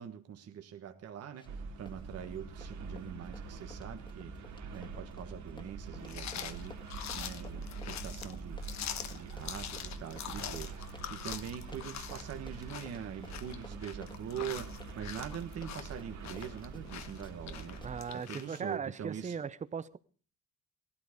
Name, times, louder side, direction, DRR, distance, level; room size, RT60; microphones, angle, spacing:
voice 1, 0.0-4.3 4.7-6.7 7.1-8.7 9.1-19.4, right 9 dB, 55° right, 1.4 m, -43 dB
Run, 1.3-1.6 1.9-16.9 17.2-17.4 17.8-17.9 18.5-18.6, left 2 dB, 15° left, 1.9 m, -55 dB
sound 1, 1.4-18.0, right 4 dB, 75° right, 2.6 m, -45 dB
sound 2, 6.1-18.6, left 10 dB, 65° left, 1.2 m, -44 dB
voice 2, 17.8-20.0, right 6 dB, 25° right, 0.6 m, -38 dB
18.5 x 13.0 x 5.1 m
cardioid pair, 140°, 30 cm